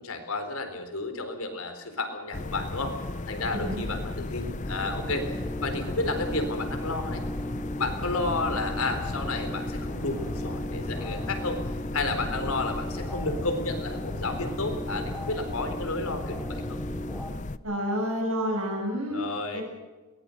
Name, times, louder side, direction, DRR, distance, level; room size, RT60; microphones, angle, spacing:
voice 1, 0.0-2.9 3.3-7.2 7.8-11.6 11.9-16.8 19.1-19.6, left 3 dB, 80° left, 6 dB, 4.2 m, -32 dB
sound 1, 2.3-17.6, left 2 dB, 35° left, 0.7 m, -35 dB
voice 2, 3.5-3.8 17.6-19.2 19.5-19.6, equal, 90° right, 0 dB, 6.2 m, -29 dB
sound 2, 4.7-17.3, equal, ahead, 2.5 m, -38 dB
22.5 x 19.5 x 6.7 m, 1.2 s
head